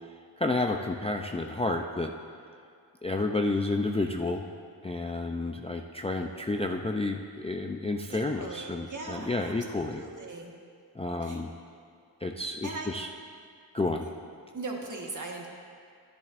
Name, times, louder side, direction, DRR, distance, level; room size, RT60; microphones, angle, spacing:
voice 1, 0.4-2.1 3.0-4.4 4.8-10.0 11.0-11.5 12.2-13.1 13.7-14.1, left 2 dB, 15° left, 3 dB, 0.4 m, -30 dB
voice 2, 8.1-10.5 11.2-11.4 12.6-12.9 14.0-14.1 14.5-15.5, right 3 dB, 45° right, 0 dB, 1.4 m, -39 dB
12.0 x 10.5 x 2.5 m, 2.3 s
wide cardioid pair, 70°, 41 cm